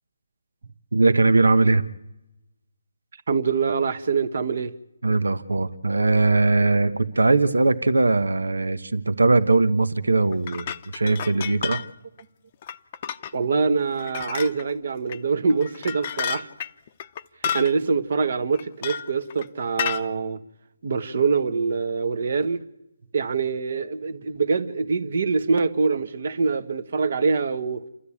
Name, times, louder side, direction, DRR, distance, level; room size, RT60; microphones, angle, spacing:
voice 1, 0.9-1.8 5.0-11.8, right 3 dB, 85° right, 1.2 m, -20 dB
voice 2, 3.3-4.7 11.3-11.5 13.3-16.5 17.5-20.4 20.8-22.6 23.1-27.9, right 4 dB, 55° right, 1.4 m, -24 dB
sound 1, 10.3-11.9 12.2-12.3 12.6-13.3 13.9-14.7 15.1-15.2 15.5-17.7 18.5-19.5 19.8-20.0, left 8 dB, 35° left, 0.8 m, -31 dB
28.5 x 13.0 x 8.6 m
figure-of-eight pair, 155°, 0 cm